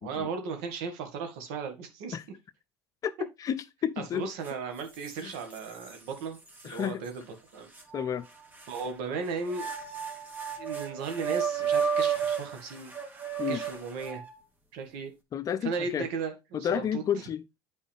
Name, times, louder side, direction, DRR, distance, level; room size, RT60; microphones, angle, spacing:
voice 1, 0.0-2.2 4.0-6.4 6.6-7.2 7.5-7.7 8.7-9.7 10.6-12.9 13.5-14.2 14.7-15.1 15.6-17.0, right 5 dB, 80° right, 2.0 m, -36 dB
voice 2, 3.4-4.3 5.2-5.3 6.6-7.0 7.9-8.3 13.4-13.6 15.3-16.1 16.5-17.6, left 9 dB, 40° left, 0.7 m, -31 dB
sound 1, 4.4-4.5 5.0-5.9 6.6-6.7 7.8-8.9 9.5-14.4, right 7 dB, 20° right, 1.8 m, -32 dB
9.1 x 4.6 x 3.5 m
supercardioid pair, 95°, 9 cm